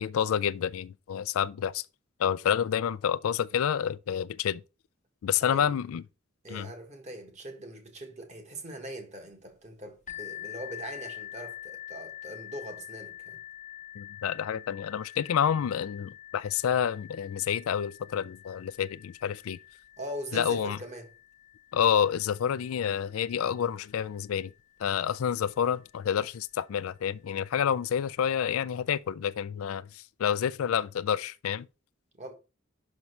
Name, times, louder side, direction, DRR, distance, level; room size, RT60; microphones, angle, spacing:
voice 1, 0.0-1.8 2.2-4.6 5.2-6.0 6.5-6.7 14.0-19.6 20.3-20.8 21.7-24.5 24.8-31.7, left 8 dB, 80° left, 0.3 m, -29 dB
voice 2, 5.4-5.7 6.4-13.4 20.0-21.1 32.2-32.3, right 1 dB, 35° right, 1.5 m, -41 dB
sound 1, 10.1-25.6 26.4-26.5 27.0-27.1, left 12 dB, 35° left, 0.7 m, -46 dB
5.9 x 5.4 x 4.4 m
head